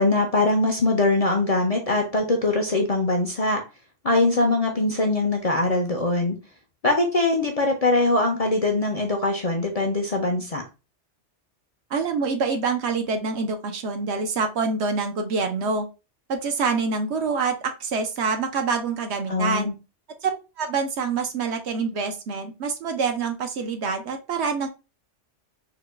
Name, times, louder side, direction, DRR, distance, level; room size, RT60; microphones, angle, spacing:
voice 1, 0.0-3.6 4.0-6.4 6.8-10.6 19.3-19.7, left 2 dB, 40° left, 2 dB, 0.5 m, -22 dB
voice 2, 11.9-15.9 16.3-19.7 20.2-20.3 20.6-24.7, right 4 dB, 70° right, 5 dB, 0.9 m, -26 dB
3.9 x 2.2 x 3.2 m, 0.29 s
omnidirectional pair, 1.2 m